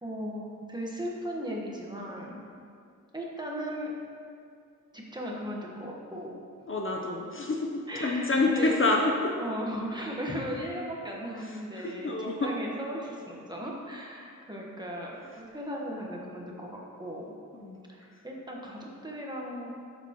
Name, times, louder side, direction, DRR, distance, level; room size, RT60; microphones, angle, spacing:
voice 1, 0.0-2.4 3.1-3.9 4.9-6.3 7.9-9.0 9.4-17.3 17.9-19.7, equal, 15° right, -3 dB, 1.2 m, -36 dB
voice 2, 6.7-9.0 11.8-12.5 17.5-17.8, left 3 dB, 40° left, 0 dB, 0.7 m, -28 dB
13.0 x 7.0 x 3.0 m, 2.4 s
wide cardioid pair, 145°, 31 cm